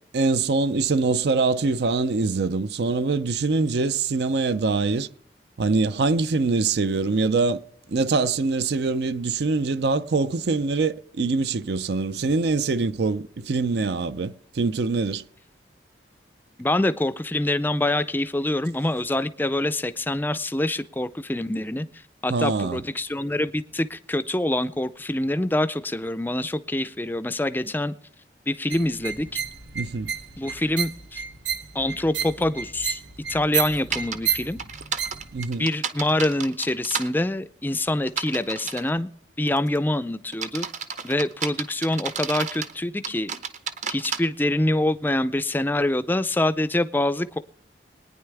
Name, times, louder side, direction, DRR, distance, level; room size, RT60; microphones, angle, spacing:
voice 1, 0.1-5.1 5.6-7.6 7.9-15.2 22.3-22.8 29.7-30.1 35.3-35.7, right 3 dB, 65° right, 0.5 m, -24 dB
voice 2, 16.6-27.9 28.5-29.4 30.4-31.2 31.7-33.0 33.3-34.6 35.6-39.1 39.4-40.7 41.0-43.3 43.9-47.4, left 1 dB, 10° left, 0.4 m, -25 dB
sound 1, 28.7-35.4, right 8 dB, 85° right, 1.1 m, -31 dB
sound 2, 33.9-34.2 34.6-37.1 38.1-38.9 39.5-39.8 40.3-42.7 43.0-44.2, right 6 dB, 40° right, 0.8 m, -31 dB
22.0 x 9.7 x 3.4 m
head